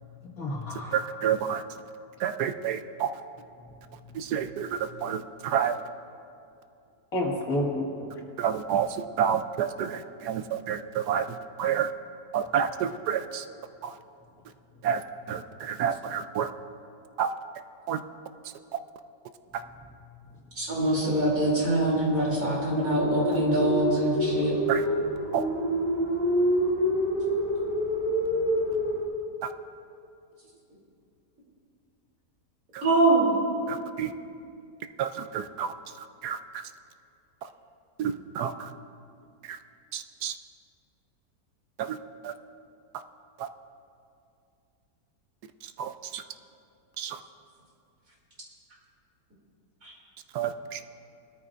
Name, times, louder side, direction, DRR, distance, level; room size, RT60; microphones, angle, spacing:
voice 1, 0.4-1.0 3.6-4.2 7.1-7.9, left 1 dB, 55° left, -2 dB, 2.3 m, -31 dB
voice 2, 0.9-1.6 2.2-3.1 4.1-5.8 8.4-11.9 12.3-13.4 13.8-14.0 14.8-15.0 15.3-16.5 17.2-17.3 17.9-18.0 19.5-19.6 24.7-24.8 25.3-25.4 29.4-29.5 32.7-32.8 33.7-34.1 35.0-36.6 37.4-37.5 38.0-38.7 39.4-39.6 39.9-40.3 41.8-42.0 42.2-42.3 43.4-43.5 45.6-46.2 47.0-47.2 50.3-50.8, right 8 dB, 75° right, 9 dB, 1.1 m, -29 dB
voice 3, 20.6-24.6 32.8-33.3 49.8-49.9, right 1 dB, 50° right, -5 dB, 3.4 m, -24 dB
sound 1, 20.8-29.0, equal, 30° right, 2.7 m, -28 dB
20.5 x 13.5 x 2.5 m, 2.5 s
omnidirectional pair, 1.8 m